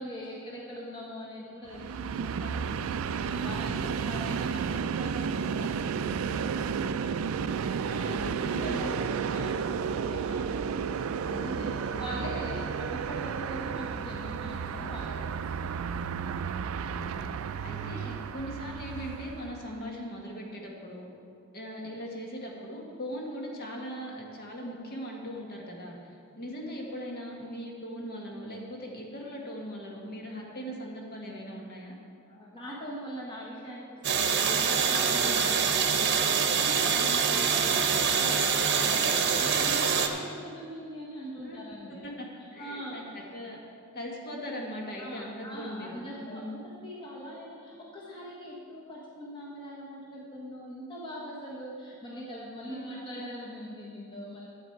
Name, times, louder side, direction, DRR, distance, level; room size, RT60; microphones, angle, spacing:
voice 1, 0.0-2.7 3.1-7.5 7.8-10.9 11.2-15.8 32.3-36.2 36.6-42.1 42.6-43.1 45.0-54.5, equal, 25° left, -4 dB, 1.3 m, -42 dB
Train, 1.7-19.8, right 6 dB, 75° right, 0.3 m, -32 dB
voice 2, 8.2-8.6 11.9-12.3 16.9-17.3 17.6-21.1 21.5-32.0 36.9-37.3 41.4-41.6 42.0-46.6 52.7-53.1, equal, 50° left, -1 dB, 1.7 m, -40 dB
sound 1, 34.0-40.1, right 6 dB, 55° right, 0.8 m, -25 dB
12.0 x 8.1 x 4.6 m, 2.4 s
head